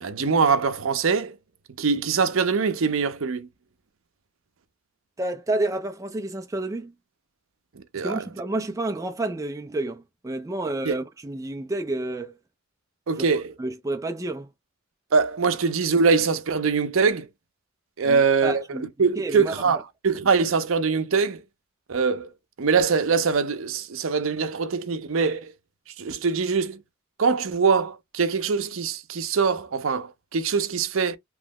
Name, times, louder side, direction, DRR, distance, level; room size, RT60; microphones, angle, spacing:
voice 1, 0.0-1.4 1.8-3.5 7.8-8.2 10.8-10.9 13.1-13.5 15.1-17.3 18.0-18.6 19.0-21.4 21.9-22.3 22.6-25.5 26.0-26.8 27.2-31.2, right 5 dB, 75° right, 0.6 m, -23 dB
voice 2, 5.2-6.9 8.0-12.4 13.2-13.3 13.6-14.5 18.0-18.9 19.2-19.8, right 2 dB, 15° right, 0.4 m, -30 dB
3.1 x 2.0 x 3.5 m
head